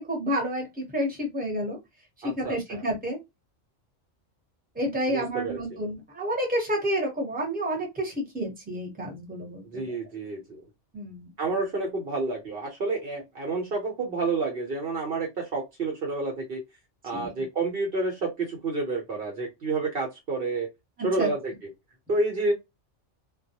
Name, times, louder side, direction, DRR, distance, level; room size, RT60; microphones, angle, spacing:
voice 1, 0.0-1.8 2.2-3.2 4.7-9.9 10.9-11.3 17.1-17.3 21.2-21.3, equal, 10° right, 0.9 m, -30 dB
voice 2, 2.2-2.8 5.1-5.8 9.7-10.6 11.4-16.6 17.0-20.7 21.0-21.5 22.1-22.5, right 3 dB, 55° right, 1.0 m, -29 dB
2.3 x 2.1 x 2.8 m
omnidirectional pair, 1.2 m